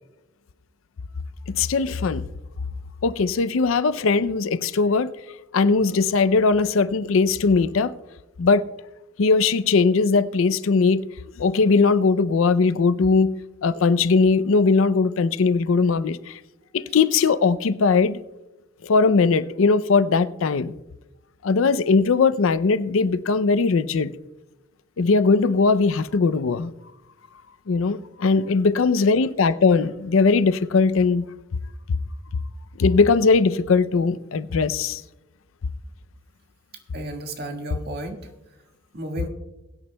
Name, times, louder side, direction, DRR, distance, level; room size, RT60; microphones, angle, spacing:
voice 1, 1.5-2.3 3.0-5.1 5.5-7.9 8.4-8.6 9.2-11.1 11.4-13.3 13.6-16.4 16.7-18.2 18.8-20.7 21.4-24.1 25.0-26.7 27.7-31.3 32.8-35.0, left 4 dB, 75° left, 0.5 m, -19 dB
voice 2, 36.9-38.2 38.9-39.3, right 1 dB, 55° right, 1.7 m, -32 dB
22.0 x 9.6 x 2.2 m
head